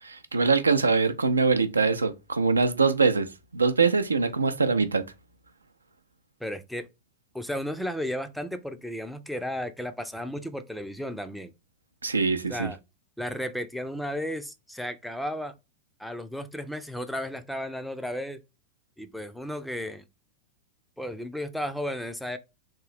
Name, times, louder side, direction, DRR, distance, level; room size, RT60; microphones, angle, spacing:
voice 1, 0.0-5.0 12.0-12.7, right 4 dB, 80° right, 0.5 m, -23 dB
voice 2, 6.4-6.8 7.3-11.5 12.5-12.8 13.2-15.5 16.0-18.4 19.0-20.0 21.0-22.4, equal, ahead, 0.5 m, -34 dB
3.6 x 2.6 x 3.3 m
figure-of-eight pair, 90°, 0 cm